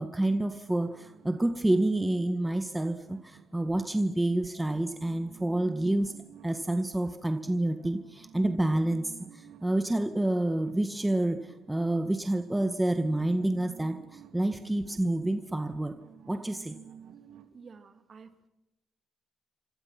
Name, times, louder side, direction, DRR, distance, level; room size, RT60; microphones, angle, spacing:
voice 1, 0.0-6.1 6.4-16.0 16.3-16.8, right 1 dB, 10° right, 7 dB, 1.7 m, -28 dB
sound 1, 0.7-17.4, right 8 dB, 80° right, 2.8 m, -53 dB
voice 2, 17.5-18.5, right 5 dB, 45° right, 7 dB, 3.1 m, -51 dB
29.5 x 26.0 x 6.0 m, 0.94 s
cardioid pair, 90°, 0 cm